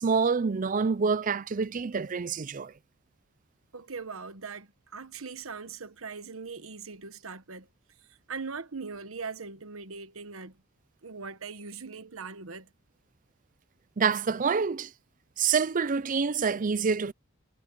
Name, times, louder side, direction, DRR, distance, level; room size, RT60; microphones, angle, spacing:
voice 1, 0.0-2.7 14.0-14.9 15.4-17.1, right 5 dB, 40° right, 0.5 m, -27 dB
voice 2, 3.7-7.7 8.3-10.6 11.0-12.7, right 4 dB, 75° right, 1.3 m, -40 dB
head